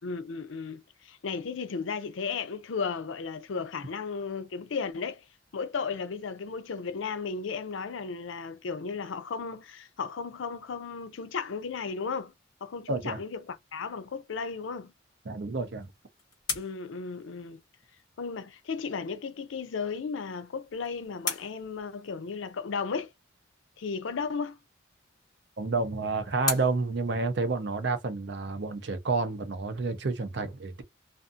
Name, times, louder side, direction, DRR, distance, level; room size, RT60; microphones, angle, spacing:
voice 1, 0.0-5.2 5.5-12.3 12.6-14.9 16.5-17.6 18.2-23.1 23.8-24.6, left 5 dB, 75° left, 0.5 m, -35 dB
voice 2, 12.9-13.2 15.3-15.9 25.6-30.8, right 3 dB, 60° right, 0.5 m, -30 dB
sound 1, 15.6-18.0 20.2-22.6 24.8-28.0, left 4 dB, 20° left, 1.2 m, -40 dB
2.5 x 2.4 x 2.5 m
head